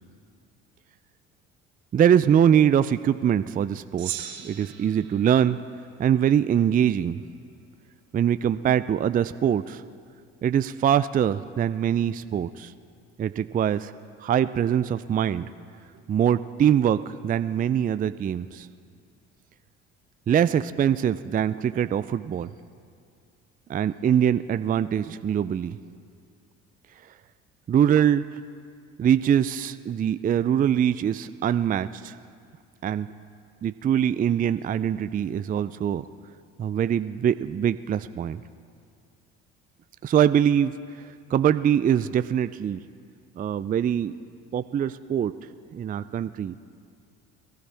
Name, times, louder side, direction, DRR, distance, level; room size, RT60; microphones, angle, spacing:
voice 1, 1.9-5.6 6.0-7.2 8.1-9.8 10.4-12.7 13.2-13.9 14.2-15.5 16.1-18.7 20.3-22.5 23.7-25.8 27.7-28.2 29.0-32.2 32.8-33.1 33.6-36.0 36.6-38.4 40.0-40.7 41.3-42.8 43.4-44.1 44.5-45.3 45.7-46.5, right 9 dB, 30° right, 13 dB, 0.4 m, -23 dB
Gong, 4.0-6.6, right 10 dB, 70° right, 1.6 m, -39 dB
22.5 x 13.0 x 3.4 m, 2.2 s
hypercardioid pair, 65°, 31 cm